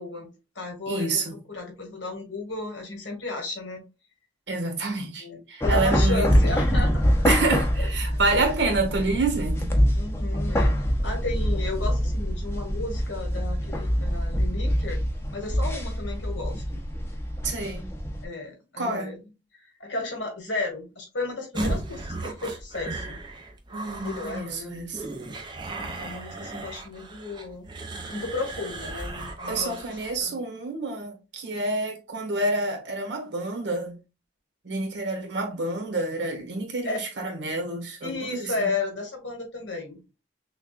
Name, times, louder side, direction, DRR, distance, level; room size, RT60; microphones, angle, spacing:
voice 1, 0.0-3.8 5.2-7.3 7.8-8.6 9.9-10.7 11.0-15.0 15.3-16.8 18.2-19.2 19.8-23.2 24.0-24.9 25.7-27.6 28.1-29.8 30.2-30.4 36.8-37.0 38.0-40.0, left 3 dB, 90° left, 1.5 m, -34 dB
voice 2, 0.9-1.4 4.5-6.7 7.2-9.7 17.4-17.9 18.8-19.1 23.7-25.0 29.5-34.0 34.6-38.7, right 2 dB, 75° right, 1.4 m, -28 dB
sound 1, 5.6-18.3, equal, 15° left, 0.6 m, -25 dB
sound 2, 21.5-30.2, right 2 dB, 25° right, 0.6 m, -35 dB
5.9 x 2.3 x 2.4 m
head